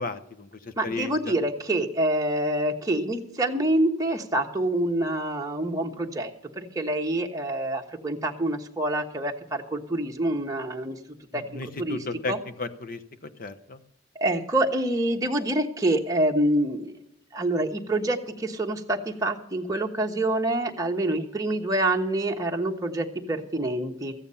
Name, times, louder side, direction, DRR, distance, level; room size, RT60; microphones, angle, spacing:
voice 1, 0.0-1.3 11.3-12.3 12.6-13.8, left 3 dB, 45° left, 10 dB, 0.9 m, -34 dB
voice 2, 0.8-6.3 6.6-11.0 11.3-12.4 14.1-16.9 17.3-24.1, right 1 dB, 20° right, 1 dB, 1.2 m, -26 dB
14.5 x 9.2 x 5.6 m, 0.77 s
head